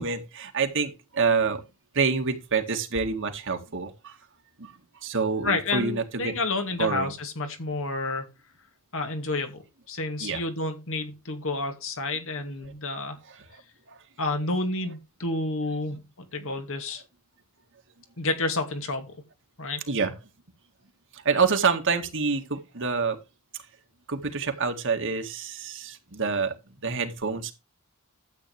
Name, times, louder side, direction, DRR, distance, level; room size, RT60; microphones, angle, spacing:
voice 1, 0.0-1.6 1.9-4.2 4.6-4.7 5.0-6.4 6.8-7.1 10.2-10.4 13.3-13.6 13.9-14.0 15.9-16.0 19.9-20.1 21.1-23.2 24.1-27.5, right 5 dB, 60° right, 2.0 m, -27 dB
voice 2, 5.4-8.3 8.9-13.2 14.2-16.0 16.3-17.0 18.2-19.1 19.6-19.8, left 2 dB, 65° left, 2.4 m, -30 dB
12.5 x 8.6 x 3.4 m
head